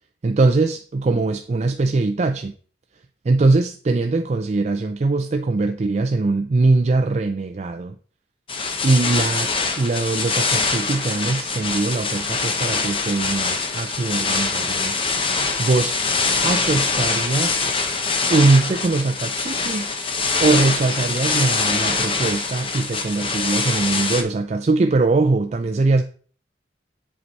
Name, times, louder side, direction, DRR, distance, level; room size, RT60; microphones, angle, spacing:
voice 1, 0.2-2.5 3.2-8.0 8.8-15.0 15.6-16.0 16.4-17.6 18.3-19.9 20.4-26.0, right 3 dB, 40° right, 0.4 m, -21 dB
sound 1, 8.5-24.2, left 4 dB, 30° left, 0.8 m, -24 dB
7.7 x 4.7 x 4.1 m
head